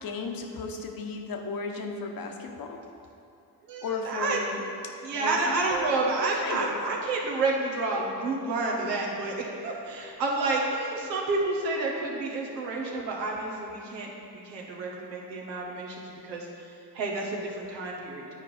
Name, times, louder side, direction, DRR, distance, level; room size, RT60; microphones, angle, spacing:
voice 1, 0.0-2.8 3.8-5.7 6.3-6.8, left 4 dB, 45° left, 3 dB, 1.0 m, -35 dB
voice 2, 3.6-4.4 5.0-16.5 16.9-18.3, right 3 dB, 90° right, -1 dB, 0.9 m, -30 dB
sound 1, 5.7-8.0, right 7 dB, 55° right, 0.9 m, -40 dB
9.6 x 4.5 x 4.2 m, 2.7 s
hypercardioid pair, 40°, 49 cm